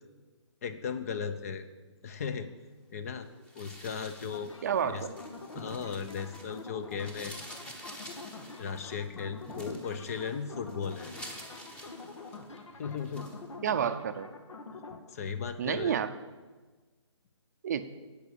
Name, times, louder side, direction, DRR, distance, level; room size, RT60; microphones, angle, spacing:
voice 1, 0.6-1.6 2.0-2.5 2.9-3.3 3.5-4.5 4.8-5.0 5.5-7.4 8.6-11.1 12.7-13.3 14.9-16.0, left 6 dB, 30° left, 11 dB, 0.7 m, -36 dB
sound 1, 3.4-6.6 6.9-12.6 13.0-13.4, equal, 5° left, 1.1 m, -47 dB
sound 2, 4.3-15.0, left 3 dB, 75° left, 1.9 m, -46 dB
voice 2, 4.6-5.1 13.6-14.3 15.6-16.1 17.6-18.0, right 8 dB, 35° right, 10 dB, 0.6 m, -30 dB
11.5 x 8.4 x 8.5 m, 1.3 s
hypercardioid pair, 160°, 16 cm